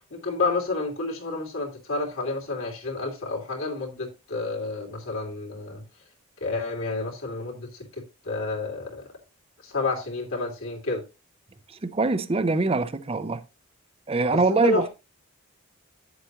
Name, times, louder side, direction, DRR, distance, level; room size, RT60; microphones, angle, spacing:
voice 1, 0.0-5.8 6.4-7.7 8.2-9.0 9.6-11.0 14.3-14.9, left 3 dB, 70° left, 3.0 m, -30 dB
voice 2, 11.7-13.4 14.1-14.9, right 3 dB, 25° right, 0.6 m, -23 dB
9.6 x 7.7 x 3.0 m
head